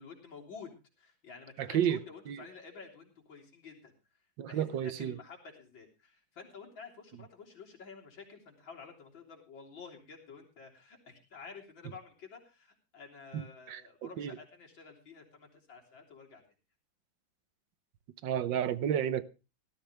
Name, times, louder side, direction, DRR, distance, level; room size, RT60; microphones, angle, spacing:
voice 1, 0.0-3.9 4.5-16.4, left 5 dB, 75° left, 4.1 m, -51 dB
voice 2, 1.6-2.0 2.3-2.5 4.4-5.2 13.3-14.3 18.2-19.2, right 9 dB, 75° right, 1.5 m, -32 dB
18.0 x 13.0 x 3.3 m
omnidirectional pair, 2.1 m